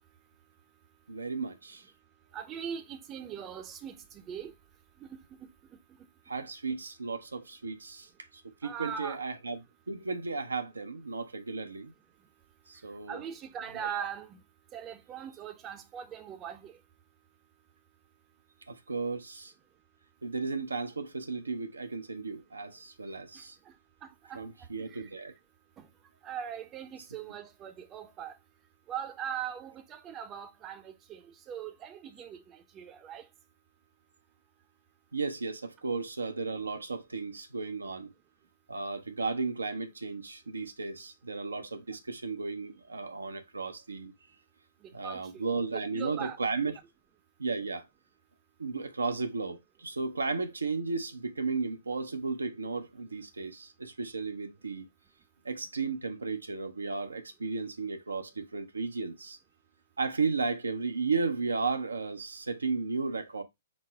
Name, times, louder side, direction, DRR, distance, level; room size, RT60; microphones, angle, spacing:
voice 1, 1.1-1.8 6.3-8.1 8.4-11.9 12.7-13.2 13.8-14.0 18.7-19.5 20.2-23.6 24.3-25.3 35.1-38.1 38.7-44.1 44.9-46.7 47.4-47.8 48.6-54.9 55.4-59.4 60.0-63.4, right 4 dB, 85° right, 0.6 m, -34 dB
voice 2, 2.3-4.5 5.0-5.1 5.4-5.5 8.6-9.2 13.1-14.4 14.7-16.8 24.0-24.4 25.0-25.1 26.2-28.3 28.9-33.2 45.0-45.4 45.7-46.4, right 8 dB, 25° right, 0.6 m, -40 dB
4.1 x 2.0 x 4.5 m
figure-of-eight pair, 120°, 0 cm